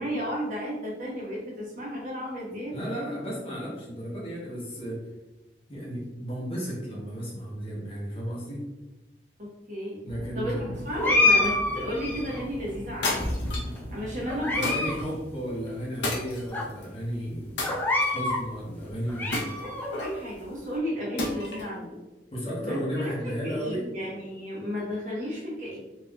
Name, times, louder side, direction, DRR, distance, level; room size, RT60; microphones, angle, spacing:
voice 1, 0.0-2.8 9.4-10.0 10.3-13.3 13.9-14.7 19.6-21.9 22.6-25.8, equal, 45° right, -4 dB, 1.0 m, -33 dB
voice 2, 2.7-5.0 5.7-8.7 10.0-10.7 14.5-17.6 18.0-19.3 22.3-23.9, equal, 30° left, -4 dB, 0.8 m, -33 dB
sound 1, 10.1-15.1, equal, 80° right, 1.1 m, -41 dB
sound 2, 11.0-12.4 13.1-13.8 14.3-15.0 15.2-15.3 16.0-16.1 16.5-16.6 17.6-18.4 18.9-19.9, left 2 dB, 10° left, 0.3 m, -26 dB
sound 3, 13.0-13.8 14.6-15.1 16.0-16.9 17.6-18.3 19.3-20.2 21.2-21.7, left 2 dB, 90° left, 0.7 m, -32 dB
3.3 x 2.6 x 2.2 m, 1.1 s
head